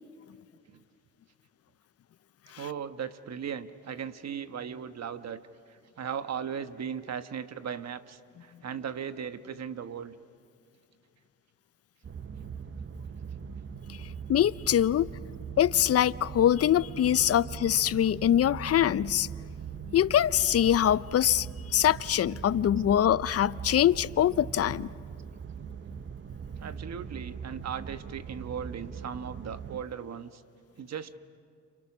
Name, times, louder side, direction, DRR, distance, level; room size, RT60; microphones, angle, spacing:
voice 1, 2.6-5.4 5.7-10.2 26.6-30.4 30.8-31.2, right 7 dB, 55° right, 1.2 m, -37 dB
sound 1, 12.0-29.8, right 6 dB, 40° right, 0.8 m, -41 dB
voice 2, 14.3-15.1 15.6-19.3 19.9-24.9, left 11 dB, 50° left, 0.6 m, -24 dB
30.0 x 28.0 x 6.2 m
supercardioid pair, 65°, 31 cm